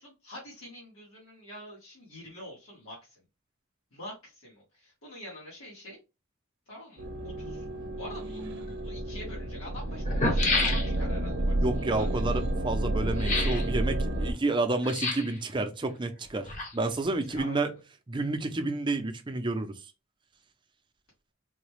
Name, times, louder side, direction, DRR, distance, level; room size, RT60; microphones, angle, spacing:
voice 1, 0.0-3.2 3.9-6.0 6.7-7.6 8.0-8.4 8.8-11.7 11.9-12.1 17.3-17.8, equal, 85° left, 1.6 m, -45 dB
sound 1, 7.0-14.3, right 1 dB, 60° right, 0.7 m, -30 dB
sound 2, 8.7-8.8 9.6-9.7 10.0-11.2 13.2-13.7 14.8-15.4 16.2-17.0 17.3-17.4, left 3 dB, 35° left, 0.8 m, -30 dB
voice 2, 11.6-17.7 18.1-19.7, right 2 dB, 25° right, 0.5 m, -30 dB
3.9 x 2.2 x 3.1 m
head